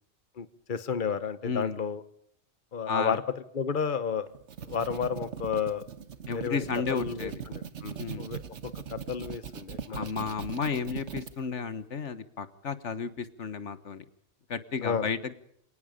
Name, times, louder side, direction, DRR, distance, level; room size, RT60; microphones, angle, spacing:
voice 1, 0.4-2.0 2.7-3.2 3.5-4.3 4.7-5.8 6.3-6.6 6.9-8.4 8.9-10.3 14.8-15.1, left 6 dB, 45° left, 12 dB, 1.3 m, -32 dB
voice 2, 1.4-1.8 2.9-3.2 6.3-7.4 8.0-8.3 9.9-14.0 14.5-15.3, left 5 dB, 85° left, 12 dB, 1.6 m, -33 dB
sound 1, 4.3-11.3, right 7 dB, 80° right, 1.4 m, -40 dB
27.5 x 18.5 x 5.2 m, 0.70 s
omnidirectional pair, 1.2 m